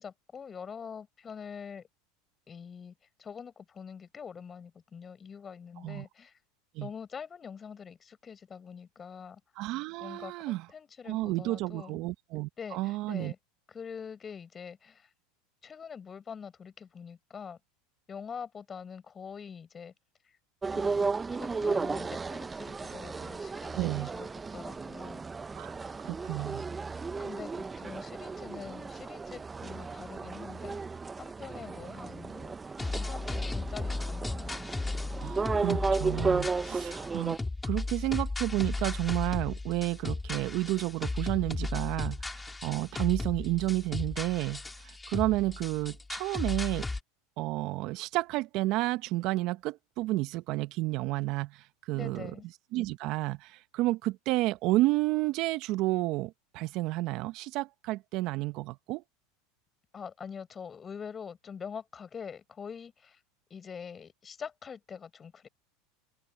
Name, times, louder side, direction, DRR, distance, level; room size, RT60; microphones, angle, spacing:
voice 1, 0.0-1.9 2.5-6.4 6.8-9.4 10.0-12.0 12.6-13.4 13.7-15.1 15.6-17.6 18.1-19.9 20.7-25.2 27.2-34.7 51.9-52.5 59.9-63.2 63.5-65.5, left 6 dB, 25° left, 5.7 m, -44 dB
voice 2, 9.6-10.7 11.1-13.3 23.8-24.1 25.5-26.7 35.2-37.4 37.6-46.9 47.4-52.3 52.7-59.0, right 18 dB, 55° right, 1.1 m, -31 dB
sound 1, 20.6-37.4, right 4 dB, 20° right, 1.0 m, -34 dB
sound 2, 32.8-47.0, left 3 dB, 10° left, 4.0 m, -35 dB
open air
hypercardioid pair, 100°, 0 cm